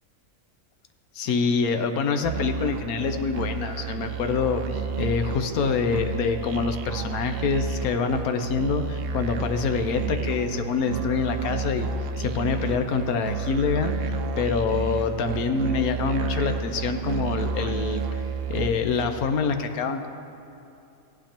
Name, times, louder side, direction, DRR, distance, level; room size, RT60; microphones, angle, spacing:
voice 1, 1.1-11.9 12.2-14.0 14.4-18.2 18.5-20.1, left 5 dB, 80° left, 7 dB, 1.1 m, -26 dB
Musical instrument, 2.2-18.7, right 5 dB, 75° right, 0.5 m, -30 dB
16.0 x 10.0 x 2.9 m, 2.7 s
omnidirectional pair, 1.5 m